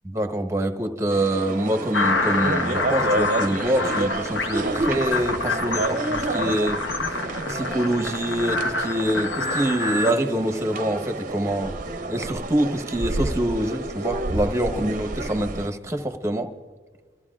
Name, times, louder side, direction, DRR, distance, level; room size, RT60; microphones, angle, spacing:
voice 1, 0.0-7.1 7.5-11.7 12.1-16.5, right 1 dB, 15° right, 7 dB, 1.0 m, -25 dB
sound 1, 1.1-15.7, right 2 dB, 45° right, 0.7 m, -30 dB
sound 2, 1.9-10.1, left 3 dB, 80° left, 1.3 m, -27 dB
26.0 x 14.0 x 2.4 m, 1.5 s
head